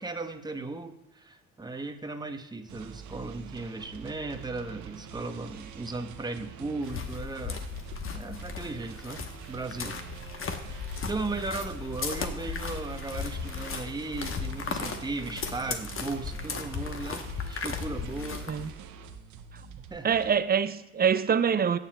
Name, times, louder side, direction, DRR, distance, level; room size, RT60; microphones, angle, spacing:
voice 1, 0.0-7.6 8.1-10.0 11.0-18.5 19.9-20.2, right 3 dB, 15° right, 0.9 m, -36 dB
sound 1, 2.7-20.4, right 9 dB, 65° right, 0.8 m, -45 dB
sound 2, 6.8-18.7, left 6 dB, 40° left, 1.0 m, -36 dB
voice 2, 20.0-21.8, right 7 dB, 30° right, 0.4 m, -25 dB
15.5 x 6.8 x 2.2 m
supercardioid pair, 65°, 32 cm